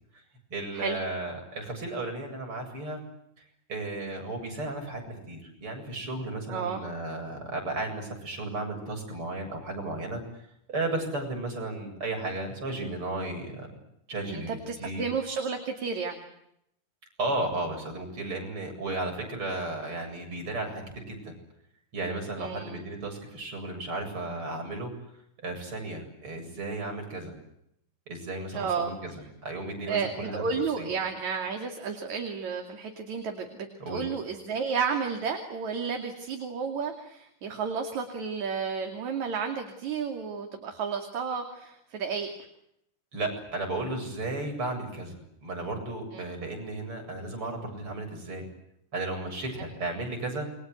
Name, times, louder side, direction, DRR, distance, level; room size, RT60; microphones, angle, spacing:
voice 1, 0.5-3.0 3.7-5.0 5.3-10.2 10.7-13.7 14.1-15.0 17.2-21.3 21.9-24.9 25.4-27.3 28.1-30.5 30.8-30.9 33.8-34.1 43.1-48.5 48.9-50.5, right 2 dB, 40° right, 3 dB, 8.7 m, -34 dB
voice 2, 6.5-6.8 14.3-16.2 22.4-22.8 28.5-28.9 29.9-42.3 46.1-46.2, right 5 dB, 60° right, 4 dB, 3.8 m, -32 dB
29.0 x 23.5 x 8.0 m, 0.78 s
omnidirectional pair, 3.8 m